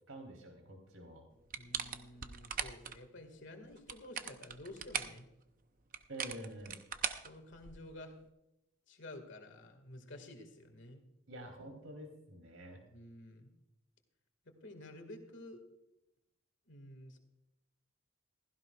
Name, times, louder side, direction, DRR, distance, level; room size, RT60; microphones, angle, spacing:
voice 1, 0.1-1.2 6.1-6.8 11.3-12.8, right 1 dB, 80° right, 3 dB, 3.6 m, -48 dB
sound 1, 1.5-3.0 3.7-5.2 5.9-7.9, right 8 dB, 40° right, 0.7 m, -40 dB
voice 2, 1.6-5.3 7.2-8.1 8.9-11.0 12.9-13.5 14.6-15.6 16.7-17.2, left 1 dB, 60° left, 5 dB, 2.0 m, -51 dB
16.0 x 15.5 x 2.4 m, 0.89 s
head